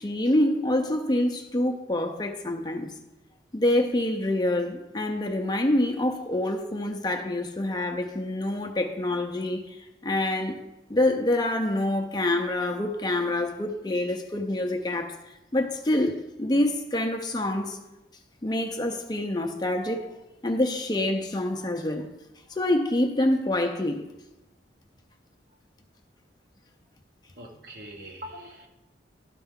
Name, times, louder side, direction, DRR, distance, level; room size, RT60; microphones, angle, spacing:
voice 1, 0.0-2.9 3.5-10.6 10.9-15.2 15.5-17.8 18.4-20.1 20.4-22.1 22.5-24.0, left 1 dB, 20° left, 0.5 m, -26 dB
voice 2, 27.4-28.7, equal, 55° right, 1.2 m, -42 dB
12.0 x 4.4 x 3.6 m
head